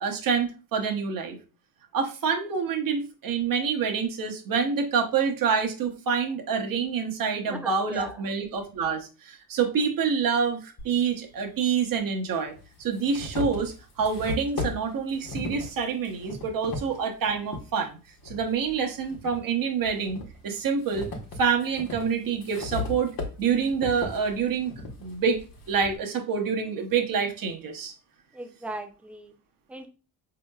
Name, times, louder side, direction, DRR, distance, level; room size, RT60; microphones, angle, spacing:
voice 1, 0.0-1.4 1.9-12.5 12.8-18.0 18.2-21.1 21.4-24.7 25.0-25.4 25.7-27.9, right 6 dB, 50° right, 3 dB, 0.9 m, -27 dB
voice 2, 7.5-8.2 28.3-29.3 29.7-29.9, right 1 dB, 5° right, 6 dB, 0.4 m, -37 dB
sound 1, 10.8-10.9 12.0-12.1 12.5-17.7 18.2-19.4 19.8-26.0, left 3 dB, 55° left, 1.1 m, -37 dB
4.2 x 2.9 x 2.3 m, 0.34 s
cardioid pair, 95°, 42 cm